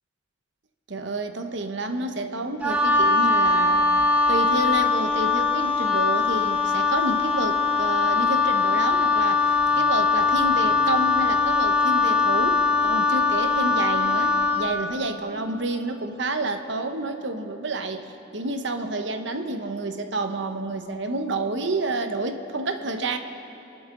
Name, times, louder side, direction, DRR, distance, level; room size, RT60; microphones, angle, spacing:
voice 1, 0.9-3.8 4.3-23.2, right 2 dB, 65° right, 7 dB, 0.9 m, -29 dB
Wind instrument woodwind instrument, 2.6-14.7, left 4 dB, 10° right, 1.2 m, -21 dB
26.0 x 12.0 x 3.8 m, 2.9 s
head